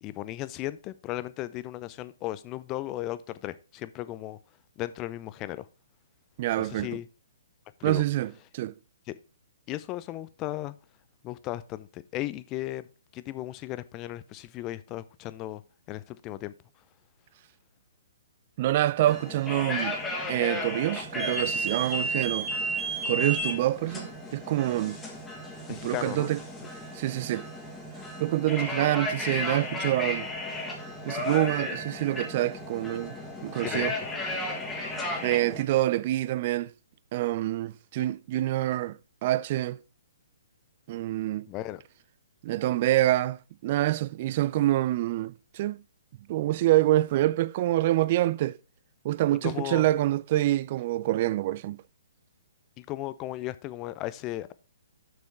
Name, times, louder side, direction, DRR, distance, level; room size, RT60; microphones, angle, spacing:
voice 1, 0.0-4.4 4.8-5.7 6.6-7.1 7.8-8.0 9.1-9.2 9.7-10.7 11.2-12.9 13.1-15.6 15.9-16.5 25.7-26.3 33.5-33.9 41.5-41.8 49.3-49.9 52.8-54.5, left 15 dB, 25° left, 0.5 m, -36 dB
voice 2, 6.4-6.9 7.8-8.7 18.6-20.0 20.3-22.5 23.1-25.0 25.7-26.4 26.9-27.5 28.2-30.3 31.1-33.2 33.4-33.9 35.2-36.7 37.1-39.8 40.9-41.5 42.4-45.8 46.3-48.6 49.0-51.8, right 15 dB, 40° right, 0.4 m, -26 dB
sound 1, 19.0-35.6, equal, 10° left, 1.7 m, -33 dB
6.8 x 6.3 x 4.6 m
figure-of-eight pair, 125°, 0 cm